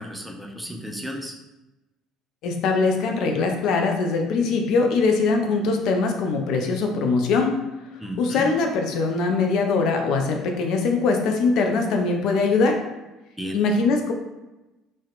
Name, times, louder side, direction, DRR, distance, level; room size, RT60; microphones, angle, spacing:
voice 1, 0.0-1.4 8.0-8.5 13.4-13.7, equal, 5° right, 1 dB, 0.4 m, -34 dB
voice 2, 2.4-7.5 8.2-12.8 13.5-14.1, left 4 dB, 55° left, 3 dB, 0.4 m, -22 dB
2.7 x 2.1 x 2.4 m, 1.0 s
figure-of-eight pair, 55°, 0 cm